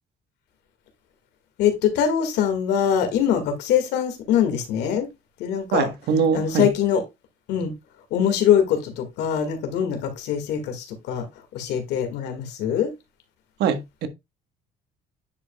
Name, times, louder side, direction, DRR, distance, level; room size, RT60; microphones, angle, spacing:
voice 1, 1.6-5.1 5.4-5.9 6.3-7.0 7.5-7.7 8.1-11.3 11.5-12.9, left 8 dB, 85° left, 1.9 m, -23 dB
voice 2, 5.7-6.7 13.6-14.1, right 6 dB, 75° right, 1.3 m, -22 dB
9.7 x 5.0 x 2.3 m
cardioid pair, 110°, 17 cm